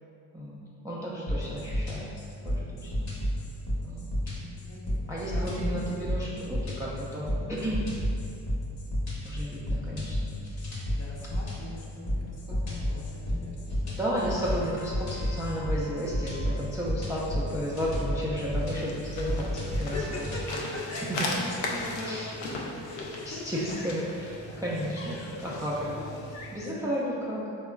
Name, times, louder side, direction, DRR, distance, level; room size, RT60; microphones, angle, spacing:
voice 1, 0.8-2.1 2.4-2.9 3.8-4.1 5.1-7.8 9.2-10.3 14.0-20.2 21.1-21.2 22.0-22.3 23.3-24.3 24.6-25.2 25.6-26.0 26.5-27.4, equal, 10° right, -7 dB, 0.3 m, -33 dB
sound 1, 1.3-20.5, left 1 dB, 55° left, 1.0 m, -31 dB
voice 2, 4.3-5.7 7.2-7.6 10.6-14.0 17.9-18.0 19.7-24.8 25.2-26.5 26.7-27.0, left 2 dB, 35° left, -3 dB, 0.6 m, -41 dB
Trumpet, 14.5-16.7, left 2 dB, 25° right, 0.7 m, -50 dB
sound 2, 18.4-26.6, left 2 dB, 85° left, 0.5 m, -38 dB
3.6 x 2.2 x 2.2 m, 2.6 s
cardioid pair, 65°, 45 cm